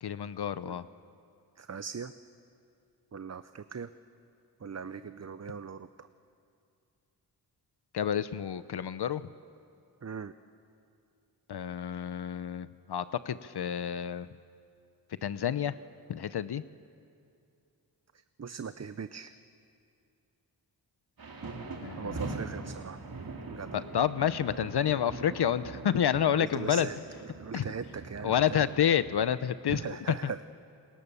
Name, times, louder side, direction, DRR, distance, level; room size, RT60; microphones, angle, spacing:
voice 1, 0.0-0.9 7.9-9.2 11.5-14.3 15.2-15.7 16.1-16.6 21.8-22.4 23.7-26.9 27.5-27.7 28.2-30.3, left 9 dB, 70° left, 14 dB, 0.7 m, -29 dB
voice 2, 1.6-2.1 3.1-3.9 4.6-6.1 10.0-10.3 18.4-19.3 22.0-23.0 23.5-23.8 26.3-27.0 27.4-28.7 29.7-30.4, right 6 dB, 40° right, 12 dB, 0.8 m, -39 dB
sound 1, 21.2-29.4, right 3 dB, 60° right, 2.7 m, -42 dB
28.0 x 24.5 x 7.0 m, 2.5 s
wide cardioid pair, 75°, 41 cm